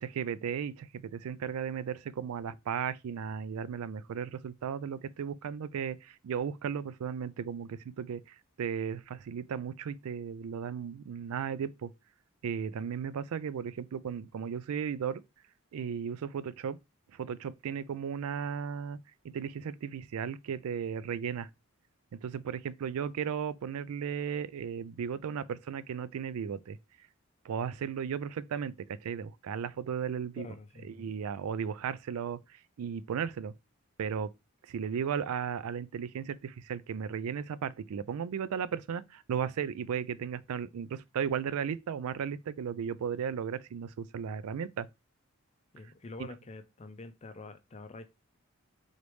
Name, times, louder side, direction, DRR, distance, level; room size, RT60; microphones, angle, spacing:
voice 1, 0.0-11.9 12.4-15.2 15.7-16.8 17.1-19.0 19.2-21.5 22.2-26.8 27.4-30.5 30.8-33.5 34.0-34.3 34.7-44.9, right 7 dB, 80° right, 0.3 m, -35 dB
voice 2, 30.4-31.1 45.7-48.1, left 3 dB, 30° left, 0.4 m, -46 dB
3.9 x 3.2 x 3.1 m
head